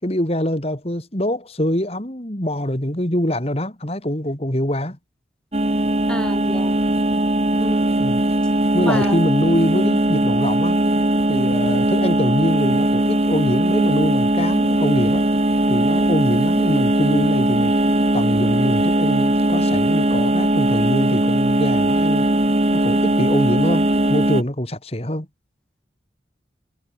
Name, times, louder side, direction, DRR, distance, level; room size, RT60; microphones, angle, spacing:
voice 1, 0.0-5.0 8.0-8.2 8.7-10.9 11.3-15.2 15.7-17.7 18.1-22.3 22.7-25.3, left 1 dB, 35° left, 3.1 m, -24 dB
sound 1, 5.5-24.4, right 1 dB, 35° right, 1.6 m, -19 dB
voice 2, 6.1-6.8 7.6-8.1 8.9-9.2, equal, 5° left, 4.9 m, -30 dB
head